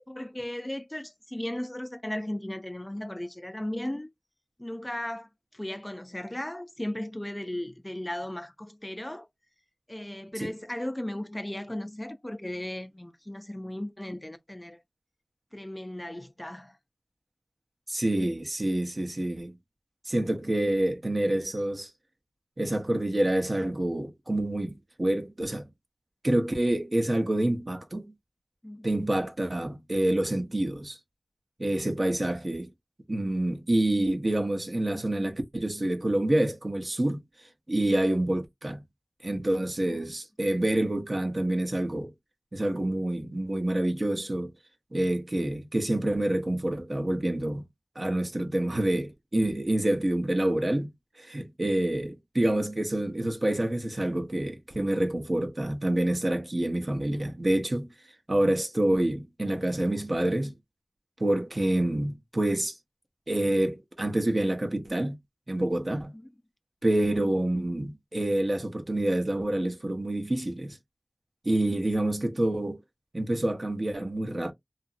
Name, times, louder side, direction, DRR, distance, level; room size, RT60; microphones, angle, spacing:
voice 1, 0.1-4.1 4.6-9.3 9.9-14.8 15.5-16.8 28.6-28.9 39.9-40.0 66.1-66.3, left 1 dB, 20° left, 0.4 m, -36 dB
voice 2, 17.9-19.6 20.1-21.9 22.6-25.7 26.2-28.1 28.8-31.0 31.6-32.7 33.1-37.2 37.7-38.8 39.2-42.1 42.5-44.5 44.9-47.7 48.0-50.9 51.2-57.9 58.3-60.5 61.2-62.8 63.3-65.2 65.5-66.1 66.8-70.8 71.4-72.8 73.1-74.5, right 1 dB, 45° right, 0.7 m, -27 dB
2.8 x 2.6 x 2.4 m
wide cardioid pair, 55°, 0 cm